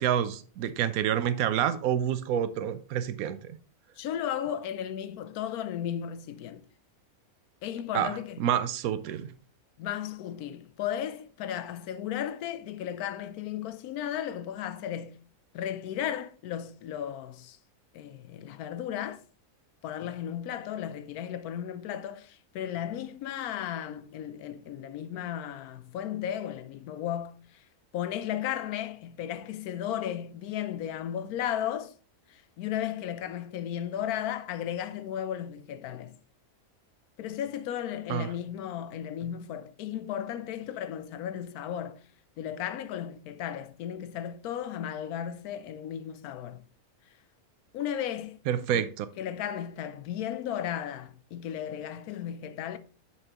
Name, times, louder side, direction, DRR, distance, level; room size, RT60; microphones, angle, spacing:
voice 1, 0.0-3.6 7.9-9.3 38.1-38.3 48.5-49.1, right 10 dB, 75° right, 1.0 m, -28 dB
voice 2, 4.0-6.6 7.6-8.5 9.8-15.2 15.5-17.6 17.9-19.2 19.8-27.6 27.9-31.9 32.3-36.2 37.2-42.0 42.4-46.6 47.7-48.4 48.7-48.9 49.2-52.8, left 10 dB, 85° left, 1.1 m, -35 dB
9.8 x 4.5 x 2.9 m
omnidirectional pair, 1.5 m